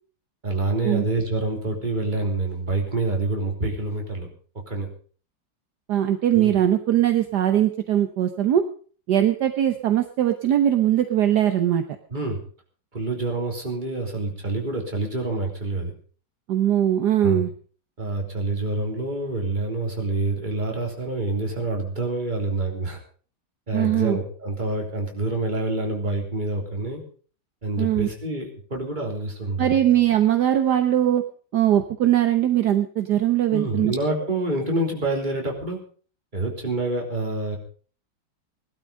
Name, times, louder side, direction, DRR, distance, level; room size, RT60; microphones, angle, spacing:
voice 1, 0.4-4.3 4.7-4.9 6.3-6.5 12.1-12.4 12.9-15.9 17.2-17.4 18.0-23.0 23.7-27.0 27.6-29.8 33.5-35.8 36.3-37.6, right 2 dB, 25° right, 1 dB, 3.6 m, -27 dB
voice 2, 5.9-8.6 9.1-11.8 16.5-17.5 23.7-24.2 27.8-28.1 29.6-31.2 31.5-33.9, right 11 dB, 65° right, 7 dB, 1.5 m, -20 dB
18.0 x 12.0 x 5.2 m, 0.43 s
omnidirectional pair, 2.0 m